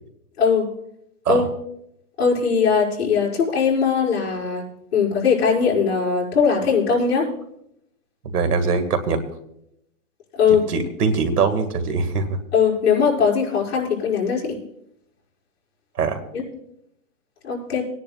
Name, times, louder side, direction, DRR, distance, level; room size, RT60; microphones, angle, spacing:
voice 1, 0.4-0.7 1.3-1.5 2.2-4.6 4.9-7.3 10.3-10.7 12.5-14.6 16.3-16.4 17.4-17.8, left 6 dB, 45° left, -5 dB, 5.2 m, -20 dB
voice 2, 8.3-9.2 10.5-12.4 16.0-16.2, right 4 dB, 90° right, 9 dB, 2.0 m, -22 dB
23.0 x 10.5 x 2.4 m, 0.77 s
hypercardioid pair, 170°, 45 cm